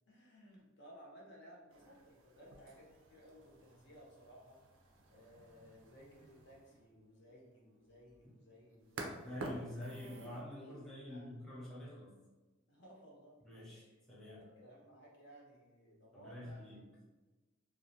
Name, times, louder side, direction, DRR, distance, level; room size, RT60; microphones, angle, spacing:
voice 1, 0.1-4.6 5.1-9.2 10.6-11.3 12.7-13.3 14.2-16.8, equal, 60° left, -3 dB, 0.7 m, -59 dB
sound 1, 1.7-10.4, right 2 dB, 80° right, 0.4 m, -51 dB
voice 2, 9.1-12.1 13.4-14.5 16.1-16.8, left 1 dB, 5° left, -7 dB, 0.5 m, -47 dB
2.4 x 2.0 x 2.7 m, 1.2 s
head